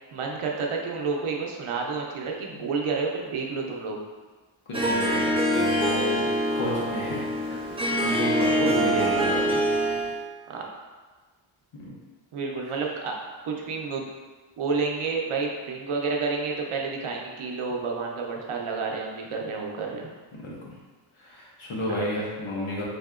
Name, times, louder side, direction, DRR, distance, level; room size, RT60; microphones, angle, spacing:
voice 1, 0.1-4.0 8.6-9.1 10.5-10.7 12.3-13.2 13.4-14.1 14.6-20.1, right 4 dB, 80° right, 0 dB, 0.7 m, -30 dB
voice 2, 4.7-7.6 8.0-9.6 11.8-11.9 20.4-20.5 21.2-22.8, left 1 dB, 75° left, -4 dB, 1.0 m, -32 dB
Harp, 4.7-10.2, equal, 15° right, 0.3 m, -24 dB
4.1 x 2.7 x 2.4 m, 1.3 s
wide cardioid pair, 105°, 50 cm